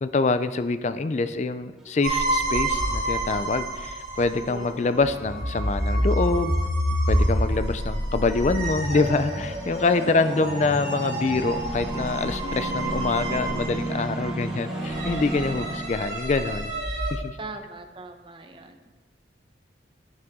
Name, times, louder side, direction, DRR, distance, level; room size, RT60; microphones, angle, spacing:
voice 1, 0.0-6.5 7.1-16.7 17.1-17.4, left 3 dB, 40° left, 11 dB, 0.4 m, -25 dB
sound 1, 1.8-2.2 8.1-15.9, right 1 dB, 5° right, 1.3 m, -35 dB
sound 2, 2.0-17.1, right 1 dB, 65° right, 3.0 m, -28 dB
voice 2, 4.5-5.0 10.0-10.8 17.4-18.9, right 2 dB, 25° right, 6 dB, 0.7 m, -39 dB
Bass guitar, 12.4-16.1, right 7 dB, 70° left, 1.5 m, -43 dB
10.5 x 9.6 x 3.6 m, 1.2 s
head